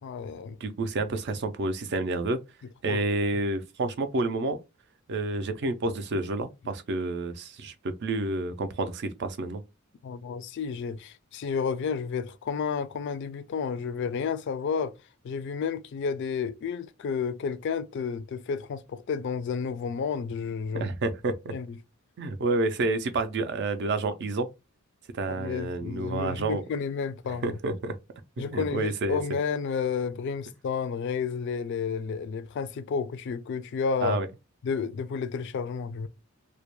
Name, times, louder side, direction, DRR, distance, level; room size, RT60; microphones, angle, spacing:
voice 1, 0.0-0.6 2.9-3.0 10.0-14.9 15.2-20.9 21.5-21.8 25.3-27.6 28.4-34.2 34.6-36.1, left 6 dB, 55° left, 0.3 m, -31 dB
voice 2, 0.6-2.4 2.8-4.6 5.1-9.6 20.7-21.5 22.2-24.5 25.1-26.6 27.4-28.0 28.4-29.2 34.0-34.3, right 2 dB, 55° right, 0.4 m, -29 dB
2.2 x 2.1 x 2.9 m
head